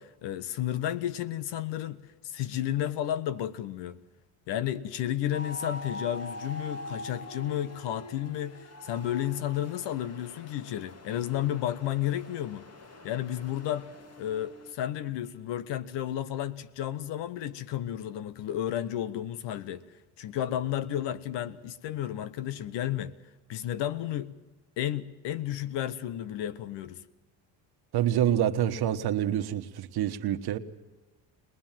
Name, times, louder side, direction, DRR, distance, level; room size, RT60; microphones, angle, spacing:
voice 1, 0.0-2.0 2.2-4.0 4.5-12.7 13.0-13.9 14.2-19.8 20.2-23.1 23.5-24.3 24.8-27.0, left 11 dB, 70° left, 1.2 m, -32 dB
sound 1, 5.3-14.7, left 1 dB, 35° left, 2.2 m, -44 dB
voice 2, 27.9-30.6, right 11 dB, 60° right, 1.4 m, -27 dB
22.5 x 20.0 x 7.5 m
supercardioid pair, 85°, 44 cm